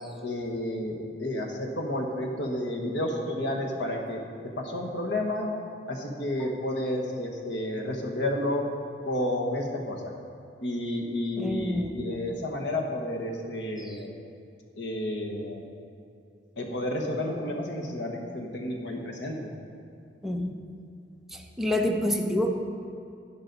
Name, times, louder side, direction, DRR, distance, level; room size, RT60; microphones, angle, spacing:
voice 1, 0.2-5.5 5.9-8.7 9.0-10.1 10.6-14.1 14.8-15.6 16.6-19.5, left 1 dB, 75° left, 1 dB, 1.3 m, -31 dB
voice 2, 11.4-11.9 13.8-14.0 20.2-20.5 21.3-22.6, left 1 dB, ahead, 1 dB, 0.8 m, -28 dB
11.5 x 10.0 x 4.1 m, 2.5 s
head